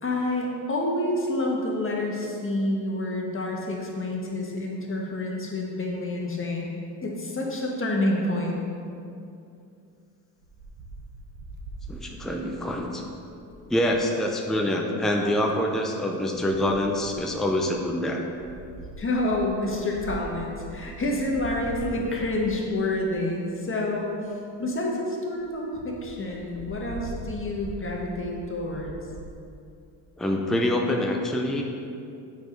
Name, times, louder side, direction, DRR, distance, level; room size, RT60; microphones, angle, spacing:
voice 1, 0.0-8.6 19.0-24.2 24.6-29.0, left 1 dB, 25° left, -2 dB, 1.6 m, -28 dB
Wind, 10.4-14.1 15.2-15.6 16.3-23.3 23.9-24.0 24.3-24.4 24.7-24.8 25.1-25.2 25.4-25.5 26.0-29.3, right 2 dB, 80° right, 0.9 m, -42 dB
voice 2, 11.9-13.0 13.7-18.2 30.2-31.6, left 1 dB, ahead, 1 dB, 0.7 m, -25 dB
7.0 x 5.0 x 4.0 m, 2.5 s
supercardioid pair, 65°, 46 cm